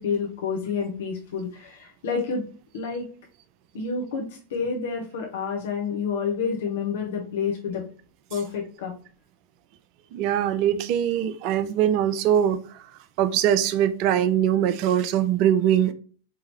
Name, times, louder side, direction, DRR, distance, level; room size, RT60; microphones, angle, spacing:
voice 1, 0.0-2.4 2.7-3.0 3.7-4.2 4.5-7.8 8.3-8.9, left 5 dB, 55° left, 1 dB, 0.8 m, -28 dB
voice 2, 10.1-12.9 13.2-15.9, right 10 dB, 45° right, 12 dB, 0.4 m, -22 dB
4.6 x 2.7 x 2.8 m, 0.41 s
figure-of-eight pair, 90°, 0 cm